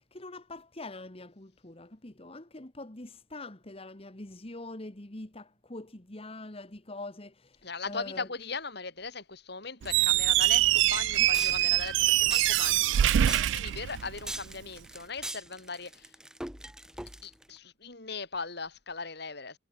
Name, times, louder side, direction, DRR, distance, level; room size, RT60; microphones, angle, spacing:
voice 1, 0.0-8.3 11.1-11.3, left 2 dB, 30° left, 1.6 m, -44 dB
voice 2, 7.6-13.0 13.5-16.1 17.2-19.6, left 4 dB, 60° left, 5.1 m, -39 dB
sound 1, 9.8-17.5, right 1 dB, 5° right, 1.3 m, -42 dB
Squeak, 9.8-14.5, right 13 dB, 75° right, 0.3 m, -24 dB
head